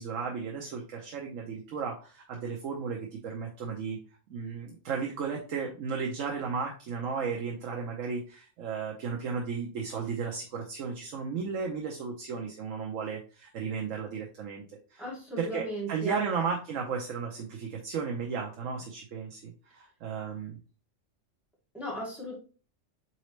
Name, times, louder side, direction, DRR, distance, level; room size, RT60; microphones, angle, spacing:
voice 1, 0.0-4.0 4.3-14.6 14.9-15.0 15.4-20.6, right 5 dB, 85° right, 0 dB, 1.1 m, -34 dB
voice 2, 15.0-16.2 21.7-22.3, equal, ahead, -6 dB, 2.2 m, -36 dB
4.3 x 4.0 x 3.1 m, 0.37 s
omnidirectional pair, 1.3 m